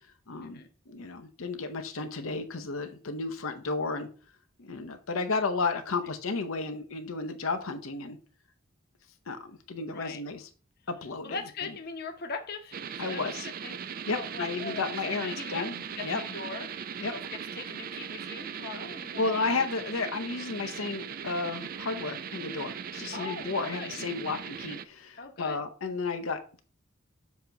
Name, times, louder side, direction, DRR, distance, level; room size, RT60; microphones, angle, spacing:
voice 1, 0.3-4.1 4.6-8.2 9.3-10.4 10.9-11.4 13.0-13.5 14.1-15.7 16.0-16.2 17.0-17.1 19.2-26.6, left 4 dB, 85° left, 0.8 m, -33 dB
voice 2, 11.2-13.8 14.1-19.3 23.1-23.9 25.2-25.6, left 4 dB, 50° left, 0.9 m, -41 dB
sound 1, 12.7-24.8, right 7 dB, 45° right, 0.4 m, -39 dB
7.4 x 3.0 x 5.8 m
head